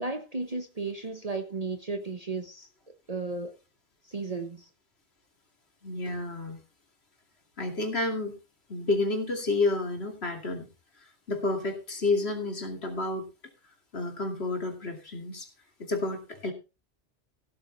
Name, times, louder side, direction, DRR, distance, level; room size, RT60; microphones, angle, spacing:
voice 1, 0.0-2.7 3.1-3.6 4.0-4.7, right 3 dB, 35° right, 1.2 m, -34 dB
voice 2, 5.8-6.6 7.6-8.4 8.7-10.7 11.3-13.3 13.9-15.5 15.8-16.5, left 2 dB, 60° left, 2.8 m, -30 dB
15.5 x 8.5 x 4.0 m
omnidirectional pair, 1.2 m